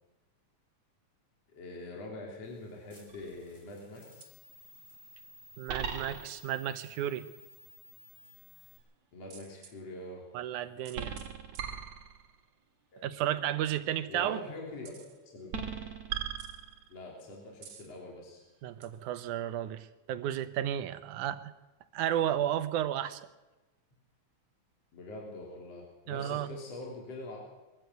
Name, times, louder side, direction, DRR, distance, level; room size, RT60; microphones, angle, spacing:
voice 1, 1.5-4.4 9.1-10.2 12.9-13.4 14.1-15.5 16.9-18.4 24.9-27.4, left 2 dB, 55° left, -2 dB, 4.4 m, -44 dB
sound 1, 2.4-8.8, left 2 dB, 20° left, 4.8 m, -56 dB
sound 2, 3.1-3.5 4.2-4.3 5.7-6.6 9.3-9.7 10.9-12.4 14.9-15.1 15.5-17.1 17.6-17.9 18.8-18.9, right 7 dB, 60° right, 2.9 m, -39 dB
voice 2, 5.6-7.3 10.3-11.2 13.0-14.4 18.6-21.5 21.9-23.3 26.1-26.5, right 11 dB, 90° right, 12 dB, 2.4 m, -33 dB
23.0 x 14.0 x 8.0 m, 1.1 s
omnidirectional pair, 3.4 m